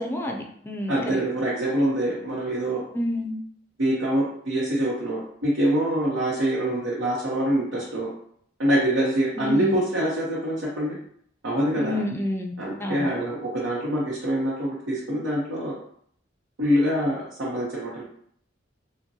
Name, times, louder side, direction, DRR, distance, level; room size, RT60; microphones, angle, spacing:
voice 1, 0.0-1.2 2.9-3.4 9.4-9.8 11.8-12.5 12.8-13.1, left 1 dB, 10° left, 2 dB, 0.4 m, -29 dB
voice 2, 0.9-2.8 3.8-8.1 8.6-11.0 11.4-12.0 12.6-15.7 16.6-18.0, right 1 dB, 90° right, -6 dB, 0.8 m, -25 dB
5.1 x 2.1 x 2.7 m, 0.66 s
head